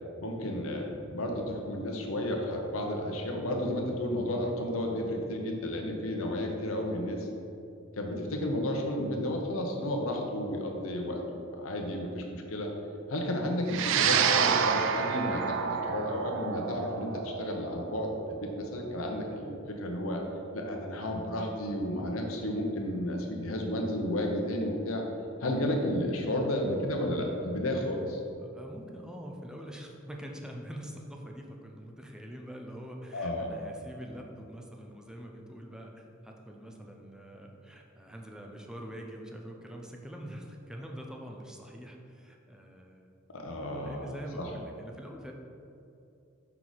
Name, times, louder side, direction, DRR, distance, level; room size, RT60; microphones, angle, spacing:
voice 1, 0.2-7.3 8.0-12.7 13.1-20.2 20.5-25.0 25.4-28.2 33.1-33.5 43.3-44.1 44.4-44.5, left 1 dB, 85° left, 2 dB, 0.9 m, -32 dB
sound 1, 13.7-22.2, right 7 dB, 65° right, 0.3 m, -30 dB
voice 2, 28.4-43.1 43.5-45.3, equal, 5° right, 0 dB, 0.5 m, -44 dB
5.6 x 4.8 x 4.0 m, 2.6 s
head